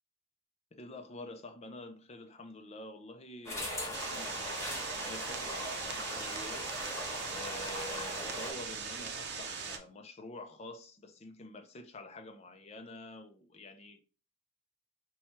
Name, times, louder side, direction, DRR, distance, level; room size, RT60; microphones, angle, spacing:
voice 1, 0.7-6.7 7.3-14.0, left 2 dB, 30° left, 0.5 m, -48 dB
sound 1, 3.4-8.5, left 1 dB, 15° left, 1.3 m, -40 dB
sound 2, 3.9-9.8, right 5 dB, 55° right, 0.7 m, -40 dB
4.3 x 2.3 x 4.3 m
head